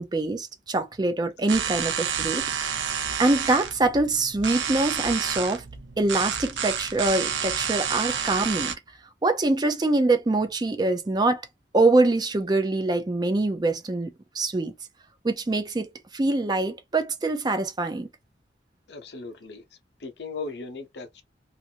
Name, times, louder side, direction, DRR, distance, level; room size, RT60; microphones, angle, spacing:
voice 1, 0.0-2.8 3.2-5.6 6.0-8.7 9.2-11.4 11.7-14.7 15.2-18.1, right 2 dB, 25° right, 0.4 m, -24 dB
sound 1, 1.5-8.7, right 7 dB, 85° right, 0.6 m, -29 dB
voice 2, 18.9-19.6 20.0-21.2, left 4 dB, 70° left, 0.7 m, -37 dB
2.6 x 2.5 x 2.7 m
head